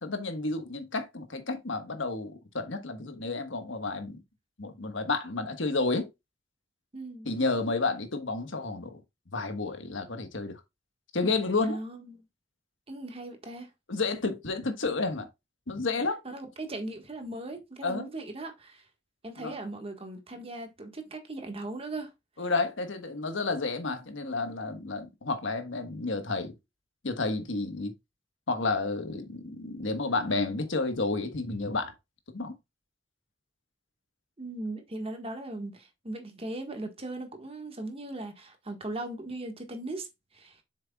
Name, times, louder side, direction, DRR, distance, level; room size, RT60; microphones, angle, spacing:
voice 1, 0.0-4.2 4.6-6.1 7.2-9.0 9.3-10.6 11.1-11.8 13.9-15.3 15.7-16.2 17.8-18.1 19.4-19.5 22.4-26.5 27.0-27.9 28.5-31.9 32.3-32.5, left 3 dB, 85° left, 1.4 m, -31 dB
voice 2, 6.9-7.3 11.6-12.2 12.9-13.7 16.2-18.9 19.2-22.1 34.4-40.1 40.3-40.6, right 2 dB, 30° right, 1.6 m, -38 dB
7.9 x 6.4 x 2.3 m
head